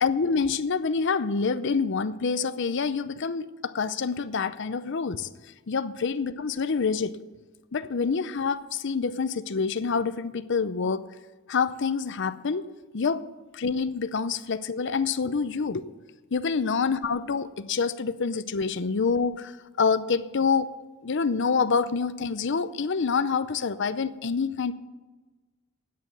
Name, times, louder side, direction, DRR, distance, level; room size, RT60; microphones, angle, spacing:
voice 1, 0.0-5.3 5.7-7.1 7.7-11.0 11.5-12.6 12.9-13.2 13.5-15.9 16.3-19.5 19.8-20.7 21.0-24.7, left 5 dB, 60° left, 13 dB, 0.6 m, -27 dB
9.4 x 8.4 x 8.8 m, 1.2 s
head